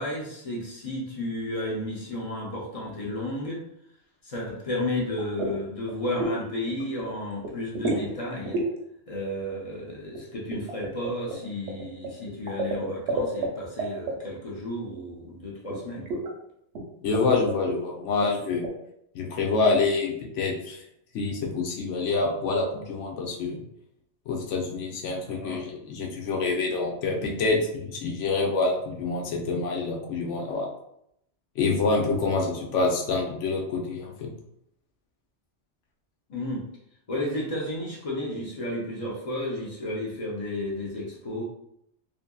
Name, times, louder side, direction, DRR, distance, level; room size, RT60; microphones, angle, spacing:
voice 1, 0.0-3.6 4.2-8.6 9.1-16.2 25.2-25.6 36.3-36.7 37.1-41.4, left 1 dB, 45° left, -3 dB, 0.4 m, -32 dB
sound 1, 5.2-5.6 5.9-6.4 6.7-7.1 7.4-8.1 8.5-8.7 10.1-13.5 13.8-14.1 15.7-15.8 16.1-16.3 16.7-16.8 17.1-17.2 17.5-17.8 18.2-18.7, right 2 dB, 75° right, 0.9 m, -29 dB
voice 2, 17.0-18.6 19.1-20.8 21.1-23.6 24.3-30.7 31.6-34.3, left 3 dB, 85° left, 0 dB, 1.0 m, -26 dB
2.6 x 2.6 x 2.2 m, 0.76 s
omnidirectional pair, 1.2 m